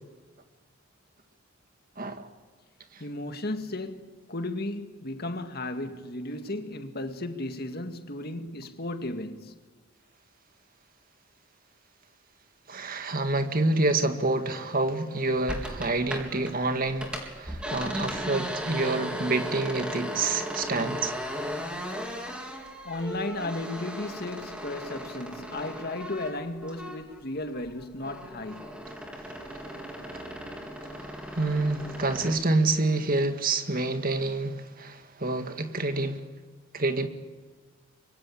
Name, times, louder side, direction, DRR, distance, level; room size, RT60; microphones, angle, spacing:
voice 1, 2.0-2.3 2.9-3.0 12.7-21.1 30.1-30.2 31.3-36.2 36.7-37.1, right 2 dB, 45° right, 2.0 m, -27 dB
voice 2, 3.0-9.6 22.8-28.7, left 2 dB, 50° left, 2.0 m, -35 dB
sound 1, 15.5-16.5 16.8-27.2 27.5-32.4, equal, 5° right, 3.9 m, -37 dB
24.5 x 23.5 x 8.6 m
head